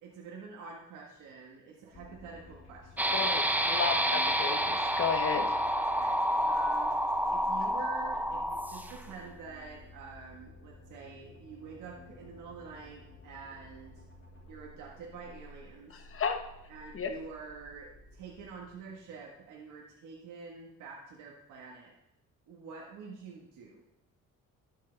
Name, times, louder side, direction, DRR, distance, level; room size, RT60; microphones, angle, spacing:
voice 1, 0.0-3.2 3.7-4.4 5.7-7.0 7.2-14.0 14.5-16.0 16.7-21.9 22.5-23.8, right 5 dB, 85° right, -2 dB, 1.6 m, -47 dB
sound 1, 1.9-19.7, left 2 dB, 60° left, 2.8 m, -53 dB
Space Woosh, 3.0-9.1, equal, 5° right, 0.6 m, -29 dB
voice 2, 3.1-5.5 15.9-16.4 16.9-17.1, left 6 dB, 45° left, 5 dB, 1.2 m, -33 dB
12.0 x 6.5 x 3.4 m, 0.82 s
cardioid pair, 90°, 30 cm